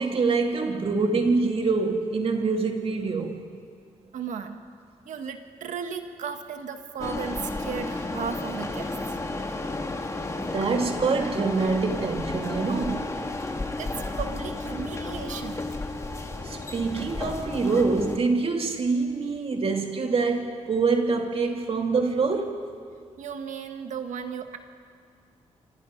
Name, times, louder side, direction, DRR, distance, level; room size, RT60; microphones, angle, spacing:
voice 1, 0.0-3.4 10.4-13.2 16.4-22.7, right 4 dB, 50° right, 3 dB, 2.7 m, -25 dB
voice 2, 4.1-4.6 5.0-9.0 13.8-15.7 23.2-24.6, right 6 dB, 90° right, 6 dB, 1.7 m, -35 dB
sound 1, 7.0-18.2, left 2 dB, 25° left, 2.0 m, -32 dB
26.5 x 26.5 x 5.4 m, 2.1 s
cardioid pair, 105°, 12 cm